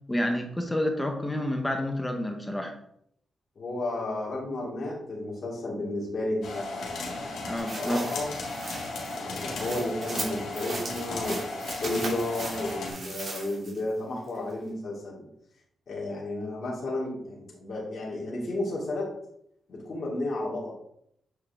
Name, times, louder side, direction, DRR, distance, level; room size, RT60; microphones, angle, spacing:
voice 1, 0.1-2.7 7.5-8.1, left 1 dB, 10° left, 4 dB, 1.0 m, -29 dB
voice 2, 3.6-7.5 7.8-8.3 9.1-15.2 15.9-19.2 19.7-20.7, left 2 dB, 55° left, -5 dB, 2.3 m, -33 dB
sound 1, 6.4-12.9, left 2 dB, 85° left, 2.0 m, -36 dB
sound 2, 7.6-13.9 14.3-14.4, right 2 dB, 50° right, 2.8 m, -38 dB
8.3 x 4.7 x 3.5 m, 0.72 s
cardioid pair, 95°, 0 cm